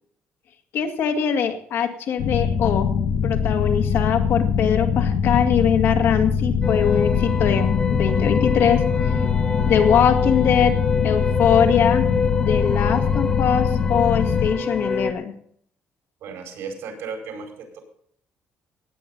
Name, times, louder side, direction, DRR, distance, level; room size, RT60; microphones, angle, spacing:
voice 1, 0.7-2.9 3.2-8.9 9.7-12.1 12.4-15.3, left 8 dB, 65° left, 5 dB, 2.0 m, -22 dB
sound 1, 2.2-14.5, left 6 dB, 85° left, 1.4 m, -22 dB
sound 2, 6.6-15.1, left 4 dB, 20° left, 1.1 m, -27 dB
voice 2, 16.2-17.8, right 5 dB, 80° right, 3 dB, 4.8 m, -35 dB
18.5 x 9.0 x 3.9 m, 0.63 s
cardioid pair, 150°, 4 cm